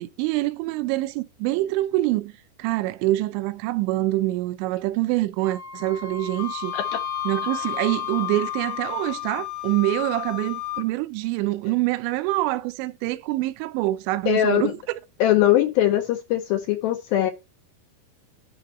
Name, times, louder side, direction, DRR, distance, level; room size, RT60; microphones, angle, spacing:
voice 1, 0.0-2.3 2.6-6.7 7.3-14.7, right 17 dB, 90° right, 3.0 m, -25 dB
Wind instrument woodwind instrument, 5.4-9.3, left 2 dB, 60° right, 2.2 m, -37 dB
Wind instrument woodwind instrument 2, 6.4-10.9, left 17 dB, 65° left, 3.3 m, -32 dB
voice 2, 14.3-14.7 15.2-17.3, left 12 dB, 90° left, 2.1 m, -21 dB
10.5 x 5.0 x 4.2 m
omnidirectional pair, 5.1 m